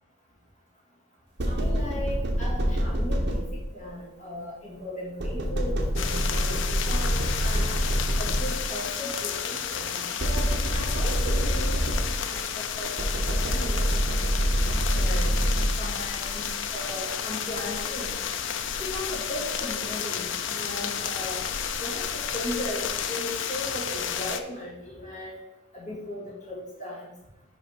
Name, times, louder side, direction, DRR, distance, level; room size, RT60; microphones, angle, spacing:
voice 1, 1.4-7.8 8.2-12.9 13.2-13.8 14.8-15.3 15.8-18.2 18.8-21.4 21.8-25.4 25.7-27.1, left 1 dB, 35° left, -6 dB, 2.5 m, -37 dB
sound 1, 1.4-3.9 5.2-8.8 10.2-12.4 13.0-16.1, equal, 55° right, 1.0 m, -26 dB
sound 2, 6.0-24.4, left 8 dB, 60° left, 0.5 m, -32 dB
5.8 x 4.8 x 5.1 m, 0.97 s
head